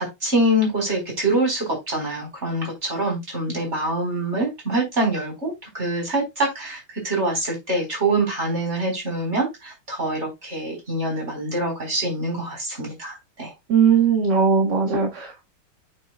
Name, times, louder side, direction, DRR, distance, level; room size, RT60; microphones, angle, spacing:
voice 1, 0.0-13.5, right 1 dB, 30° right, 5.0 m, -25 dB
voice 2, 13.7-15.5, right 6 dB, 60° right, 2.4 m, -19 dB
8.6 x 7.8 x 2.4 m
omnidirectional pair, 2.2 m